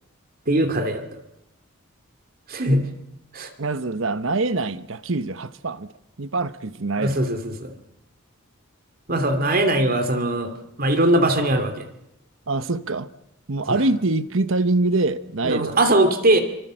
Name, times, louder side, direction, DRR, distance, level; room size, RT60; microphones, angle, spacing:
voice 1, 0.5-1.2 2.5-2.9 3.3-3.5 7.0-7.7 9.1-10.5 10.8-11.9 13.7-13.8 15.4-16.4, right 1 dB, 45° right, 2.8 m, -20 dB
voice 2, 3.6-5.9 6.2-7.2 12.5-13.1 13.5-15.7, right 2 dB, 65° right, 1.1 m, -24 dB
28.0 x 25.0 x 7.7 m
head